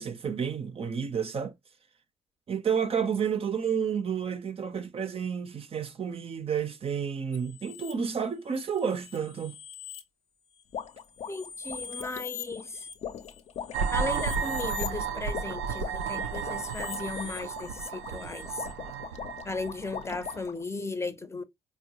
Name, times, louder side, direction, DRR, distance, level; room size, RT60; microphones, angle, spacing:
voice 1, 0.0-1.5 2.5-9.6, right 7 dB, 40° right, 0.6 m, -30 dB
sound 1, 7.3-7.9 8.6-10.0 10.6-15.0 15.9-18.7, left 9 dB, 80° left, 0.8 m, -44 dB
sound 2, 10.7-20.6, left 8 dB, 50° left, 0.5 m, -41 dB
voice 2, 11.3-12.9 13.9-18.7 19.4-21.4, left 3 dB, 20° left, 0.7 m, -36 dB
sound 3, 13.7-20.4, right 6 dB, 80° right, 0.4 m, -33 dB
4.3 x 2.2 x 2.9 m
hypercardioid pair, 45°, 14 cm